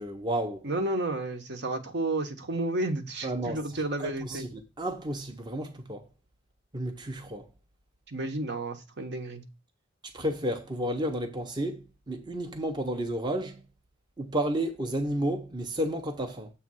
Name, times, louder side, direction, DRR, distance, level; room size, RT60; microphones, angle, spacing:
voice 1, 0.0-0.7 3.2-6.1 6.7-7.5 10.0-13.6 14.2-16.5, right 1 dB, 25° right, 0.8 m, -32 dB
voice 2, 0.6-4.5 8.1-9.4, right 2 dB, 60° right, 1.1 m, -31 dB
7.4 x 3.2 x 6.2 m
head